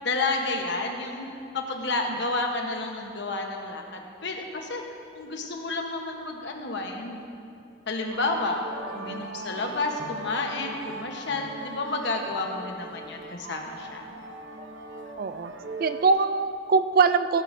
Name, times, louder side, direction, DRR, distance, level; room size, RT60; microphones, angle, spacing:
voice 1, 0.0-1.3 1.5-4.8 5.1-7.2 7.9-8.6 8.9-14.1, left 3 dB, 55° left, 2 dB, 1.1 m, -30 dB
sound 1, 8.1-16.1, right 2 dB, 65° right, 0.8 m, -40 dB
voice 2, 8.8-9.2 15.2-15.5 15.8-17.4, right 4 dB, 45° right, 12 dB, 0.3 m, -23 dB
16.0 x 10.0 x 2.7 m, 2.6 s
head